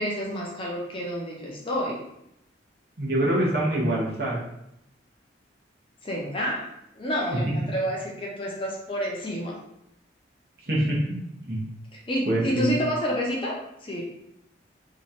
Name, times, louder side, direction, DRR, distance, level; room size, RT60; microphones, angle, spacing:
voice 1, 0.0-2.0 6.0-6.7 6.9-9.6 11.9-14.0, equal, 25° left, -3 dB, 0.6 m, -29 dB
voice 2, 3.0-4.4 10.7-11.0 11.5-11.6 12.2-12.8, right 1 dB, 50° right, -5 dB, 1.0 m, -24 dB
3.0 x 2.4 x 4.2 m, 0.79 s
head